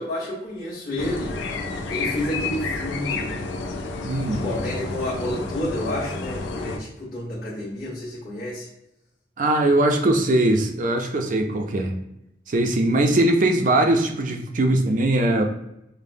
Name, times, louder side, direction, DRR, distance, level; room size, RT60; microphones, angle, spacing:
voice 1, 0.0-1.3 1.9-3.4 4.3-8.7, left 1 dB, 55° left, -12 dB, 1.2 m, -30 dB
sound 1, 1.0-6.8, left 3 dB, 85° left, 0.4 m, -30 dB
voice 2, 4.0-4.5 9.4-11.9 12.5-15.4, right 1 dB, 45° right, 4 dB, 0.5 m, -20 dB
5.0 x 2.1 x 2.6 m, 0.84 s
head